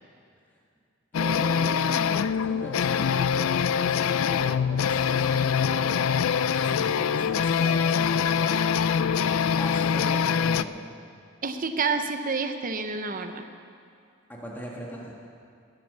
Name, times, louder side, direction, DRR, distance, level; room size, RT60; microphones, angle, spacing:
sound 1, 1.1-10.6, left 7 dB, 85° left, 0.4 m, -24 dB
voice 1, 1.1-8.6 9.3-10.9 14.3-15.1, right 1 dB, 10° left, -3 dB, 1.6 m, -39 dB
voice 2, 11.4-13.5, right 4 dB, 40° right, 7 dB, 0.8 m, -29 dB
19.5 x 8.9 x 6.6 m, 2.3 s
head